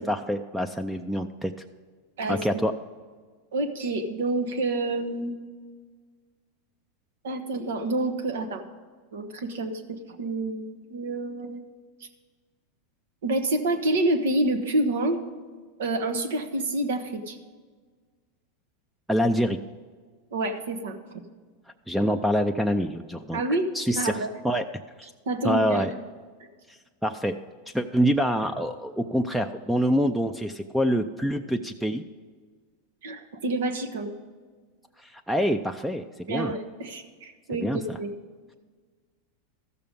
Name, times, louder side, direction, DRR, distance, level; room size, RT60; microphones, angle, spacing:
voice 1, 0.0-1.5 2.3-2.7 19.1-19.6 21.9-23.4 23.7-24.6 25.0-25.1 25.4-25.9 26.7-27.3 27.7-32.0 35.0-36.5 37.5-38.0, equal, 5° right, 9 dB, 0.4 m, -26 dB
voice 2, 2.2-2.6 3.5-5.3 7.2-8.6 9.1-11.6 13.2-15.2 15.8-17.4 20.3-21.2 23.3-24.3 25.3-25.9 33.0-34.1 36.3-38.1, right 2 dB, 80° right, 8 dB, 1.2 m, -28 dB
14.0 x 6.8 x 5.2 m, 1.5 s
supercardioid pair, 125°, 0 cm